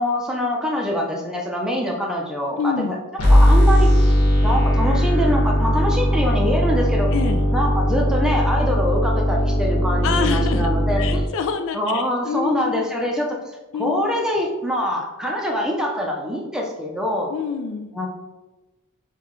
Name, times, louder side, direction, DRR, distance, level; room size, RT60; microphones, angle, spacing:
voice 1, 0.0-3.0 3.3-4.1 4.4-7.1 7.5-11.2 11.7-17.3 17.9-18.1, equal, 5° right, -1 dB, 0.5 m, -24 dB
voice 2, 2.6-2.9 7.1-7.5 10.0-12.8 13.7-14.2 17.3-17.9, left 6 dB, 60° left, 7 dB, 0.3 m, -27 dB
sound 1, 3.2-11.2, equal, 80° left, 1.2 m, -18 dB
5.6 x 2.4 x 3.0 m, 1.1 s
head